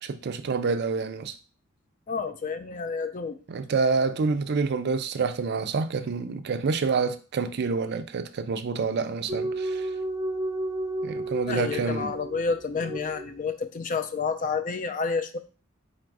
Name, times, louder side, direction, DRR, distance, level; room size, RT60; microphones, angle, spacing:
voice 1, 0.0-1.3 3.5-9.9 11.0-12.1, right 4 dB, 55° right, 0.4 m, -27 dB
voice 2, 2.1-3.4 11.5-15.4, left 5 dB, 40° left, 0.4 m, -29 dB
sound 1, 9.3-13.4, right 2 dB, 15° right, 0.7 m, -32 dB
4.2 x 2.5 x 4.6 m
head